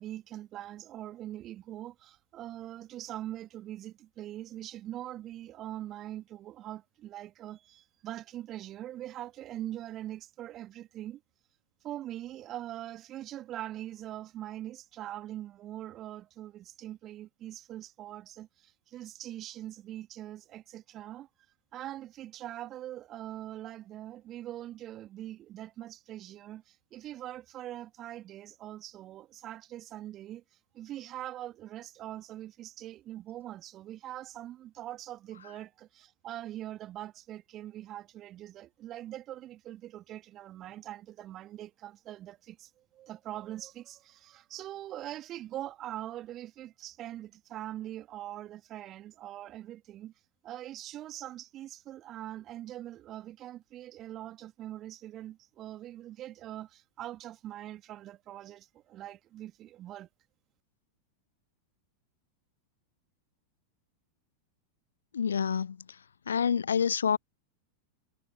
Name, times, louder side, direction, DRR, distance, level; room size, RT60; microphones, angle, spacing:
voice 1, 0.0-11.2 11.8-21.3 21.7-50.1 50.4-60.1, right 13 dB, 30° right, 2.2 m, -42 dB
voice 2, 65.1-65.8 66.3-67.2, left 7 dB, 70° left, 0.5 m, -27 dB
figure-of-eight pair, 90°, 0 cm